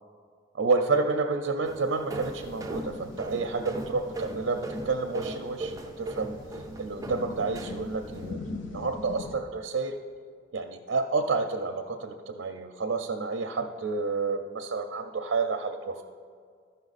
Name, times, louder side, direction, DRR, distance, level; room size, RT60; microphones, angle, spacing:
voice 1, 0.5-6.4 6.8-10.0 10.5-16.0, right 4 dB, 75° right, 5 dB, 0.5 m, -30 dB
sound 1, 1.6-8.3, right 2 dB, 15° right, 0.5 m, -38 dB
sound 2, 2.1-9.3, left 3 dB, 85° left, 0.7 m, -43 dB
13.5 x 5.4 x 4.1 m, 2.1 s
head